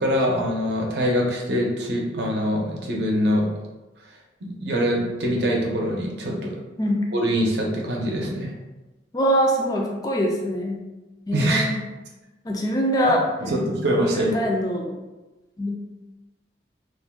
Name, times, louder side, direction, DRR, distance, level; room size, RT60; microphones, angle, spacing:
voice 1, 0.0-3.5 4.4-6.5 7.1-8.5 11.3-11.7 13.4-14.4, equal, 70° right, -1 dB, 0.6 m, -23 dB
voice 2, 9.1-10.8 11.3-11.8 12.4-13.2 14.1-14.9 15.6-15.8, equal, 20° left, -1 dB, 0.3 m, -23 dB
2.5 x 2.2 x 3.5 m, 1.1 s
head